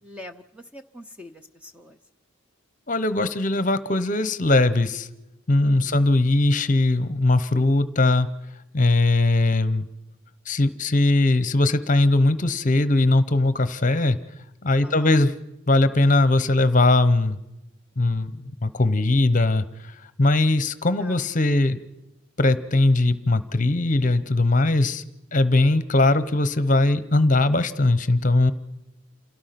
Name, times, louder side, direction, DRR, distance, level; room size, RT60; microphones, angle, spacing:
voice 1, 0.0-2.0 5.6-6.0 14.8-15.2 21.0-21.2, left 1 dB, 5° right, 6 dB, 0.7 m, -44 dB
voice 2, 2.9-5.1 5.5-8.3 8.7-9.9 10.5-14.2 14.6-15.3 15.7-17.4 18.0-18.3 18.6-21.8 22.4-25.0 25.3-28.5, left 2 dB, 35° left, 13 dB, 0.9 m, -20 dB
28.5 x 18.0 x 6.0 m, 0.93 s
head